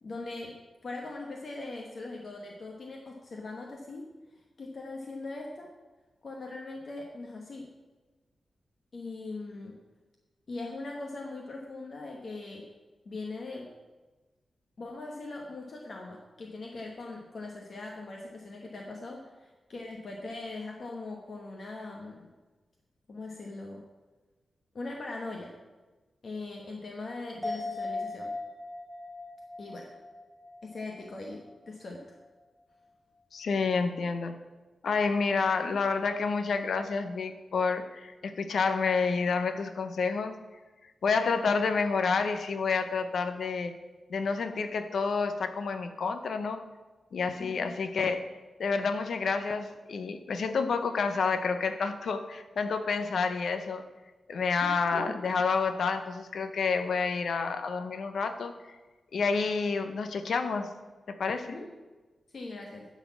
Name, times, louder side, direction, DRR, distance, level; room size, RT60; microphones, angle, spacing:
voice 1, 0.0-5.7 6.2-7.7 8.9-9.8 10.5-12.7 13.0-13.7 14.8-22.2 23.1-23.8 24.7-25.6 26.2-28.3 29.6-29.9 30.6-32.2 47.4-47.7 54.6-55.1 61.4-61.7 62.3-62.9, left 2 dB, 50° left, 0 dB, 1.1 m, -41 dB
sound 1, 27.4-31.1 31.5-31.6, left 2 dB, 5° left, 2.8 m, -38 dB
voice 2, 33.3-34.4 34.8-40.3 41.0-43.8 44.1-46.7 47.1-48.2 48.6-53.8 54.3-58.5 59.1-60.7 61.1-61.6, left 4 dB, 75° left, 8 dB, 0.7 m, -29 dB
11.5 x 4.2 x 6.9 m, 1.2 s
wide cardioid pair, 130°, 0 cm